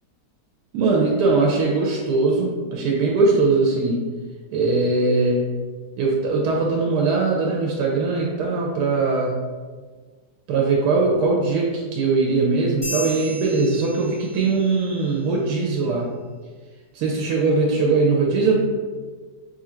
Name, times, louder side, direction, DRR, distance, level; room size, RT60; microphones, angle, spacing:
voice 1, 0.7-4.0 4.5-5.5 6.0-9.3 10.5-16.1 16.9-18.6, right 3 dB, 80° right, -1 dB, 1.2 m, -20 dB
sound 1, 12.8-14.7, equal, 10° left, 0.4 m, -34 dB
3.3 x 2.5 x 4.3 m, 1.4 s
omnidirectional pair, 1.8 m